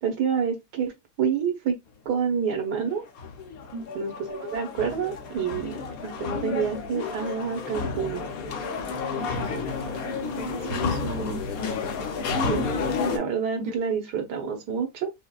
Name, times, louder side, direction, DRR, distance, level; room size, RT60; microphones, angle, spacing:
voice 1, 0.0-1.8 2.0-3.0 3.9-5.7 6.0-8.3 12.5-15.1, right 7 dB, 90° right, 1.5 m, -28 dB
sound 1, 2.9-13.2, left 4 dB, 65° left, 1.2 m, -31 dB
voice 2, 3.7-4.1 9.2-11.5 13.6-13.7, right 2 dB, 60° right, 1.1 m, -36 dB
5.0 x 2.1 x 2.3 m
omnidirectional pair, 1.7 m